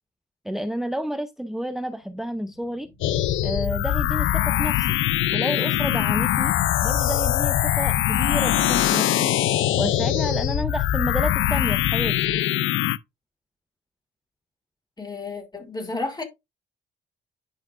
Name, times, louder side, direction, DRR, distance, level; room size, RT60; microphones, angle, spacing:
voice 1, 0.4-2.9 3.4-5.0 5.3-6.6 6.8-9.3 9.8-12.4, equal, ahead, 0.6 m, -30 dB
Explosion, 2.0-8.1, left 4 dB, 45° left, 1.7 m, -41 dB
sound 1, 3.0-13.0, left 13 dB, 75° left, 0.5 m, -22 dB
voice 2, 15.0-16.2, left 3 dB, 20° left, 3.1 m, -32 dB
10.5 x 5.8 x 2.5 m
cardioid pair, 90°, 20 cm